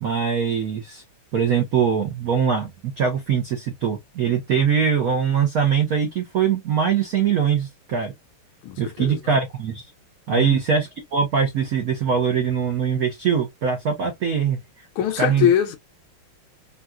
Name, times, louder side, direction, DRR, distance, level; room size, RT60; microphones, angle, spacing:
voice 1, 0.0-1.0 1.3-2.7 3.0-8.1 8.8-9.9 10.3-14.6 15.2-15.5, right 7 dB, 75° right, 0.8 m, -22 dB
voice 2, 8.6-9.2 10.3-10.6 15.0-15.8, left 10 dB, 75° left, 1.4 m, -22 dB
4.0 x 2.3 x 2.3 m
omnidirectional pair, 2.4 m